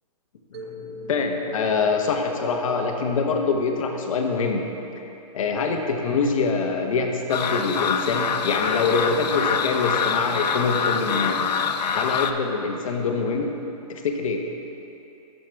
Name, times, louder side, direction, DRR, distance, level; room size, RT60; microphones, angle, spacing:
voice 1, 0.5-4.7 5.3-11.4 11.9-13.5 13.9-14.4, left 4 dB, 55° left, 3 dB, 0.9 m, -24 dB
Mallet percussion, 0.5-4.7, right 1 dB, 40° right, 0.4 m, -41 dB
sound 1, 7.3-12.3, left 6 dB, 80° left, 0.5 m, -25 dB
7.4 x 6.5 x 4.6 m, 3.0 s
hypercardioid pair, 160°, 21 cm